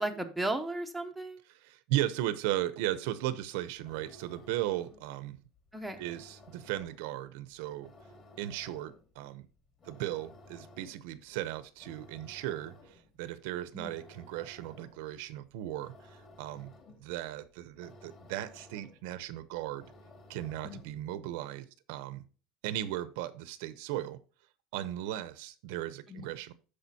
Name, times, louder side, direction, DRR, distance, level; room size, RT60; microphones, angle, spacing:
voice 1, 0.0-1.4 5.7-6.0 13.7-13.9 20.6-20.8 26.1-26.3, right 1 dB, ahead, 0.7 m, -35 dB
voice 2, 1.5-5.4 6.0-7.9 8.4-9.5 9.8-16.7 17.0-19.9 20.3-22.2 22.6-24.2 24.7-26.5, right 14 dB, 70° right, 0.8 m, -36 dB
sound 1, 3.8-21.2, left 1 dB, 25° left, 2.1 m, -57 dB
13.0 x 4.9 x 2.8 m
cardioid pair, 180°, 0 cm